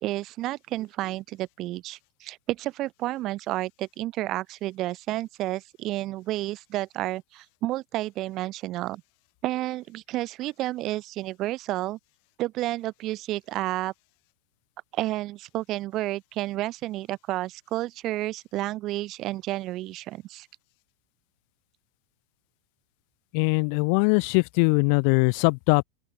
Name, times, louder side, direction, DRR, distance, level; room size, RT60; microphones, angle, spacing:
voice 1, 0.0-9.0 9.4-12.0 12.4-13.9 14.9-20.5, right 16 dB, 40° right, 2.0 m, -31 dB
voice 2, 23.3-25.8, left 40 dB or more, 55° left, 1.0 m, -21 dB
open air
supercardioid pair, 130°, 0 cm